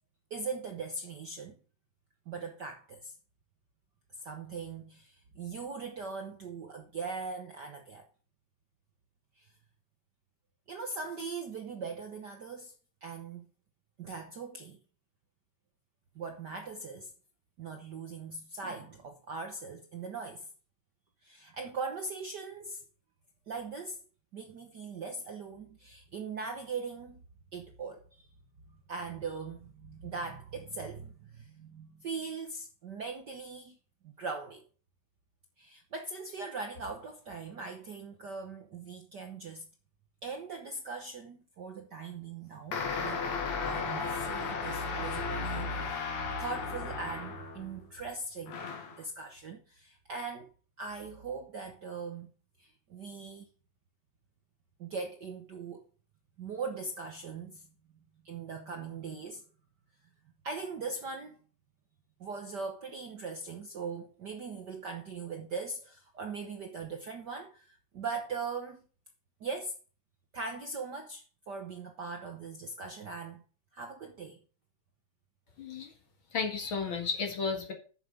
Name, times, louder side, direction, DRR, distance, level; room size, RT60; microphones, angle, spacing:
voice 1, 0.3-1.6 2.3-3.1 4.2-8.0 9.4-9.5 10.7-12.7 13.0-13.5 14.0-14.8 16.1-17.1 17.6-20.5 21.2-22.8 23.5-24.0 24.3-27.2 27.5-28.2 28.7-33.8 34.0-34.6 35.6-39.6 40.2-43.2 43.6-48.6 49.0-50.5 50.8-52.3 52.6-53.4 54.8-55.8 56.4-57.7 58.2-59.4 60.4-61.4 62.2-68.8 69.4-69.7 70.3-73.4 73.7-74.4, right 4 dB, 70° right, 1.0 m, -40 dB
sound 1, 42.7-47.8 48.5-49.0, left 5 dB, 70° left, 3.0 m, -35 dB
voice 2, 75.6-75.9 76.3-77.7, left 5 dB, 45° left, 2.3 m, -33 dB
8.3 x 7.4 x 5.3 m
omnidirectional pair, 3.5 m